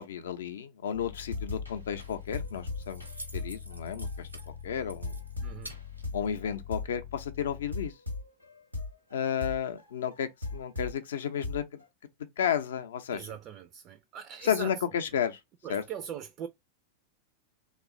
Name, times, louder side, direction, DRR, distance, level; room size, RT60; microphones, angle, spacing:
voice 1, 0.0-3.0 3.3-4.3 4.6-5.1 6.1-7.9 9.1-11.8 12.4-13.3 14.4-15.4 15.7-15.8, left 8 dB, 60° left, 0.5 m, -32 dB
sound 1, 0.9-11.0 11.4-11.9, left 3 dB, 90° left, 0.7 m, -39 dB
Keys jangling, 1.7-6.8, right 1 dB, 85° right, 0.8 m, -50 dB
voice 2, 5.4-5.8 13.1-14.8 15.6-16.5, right 8 dB, 35° right, 0.4 m, -41 dB
3.0 x 2.3 x 3.6 m
figure-of-eight pair, 90°, 0 cm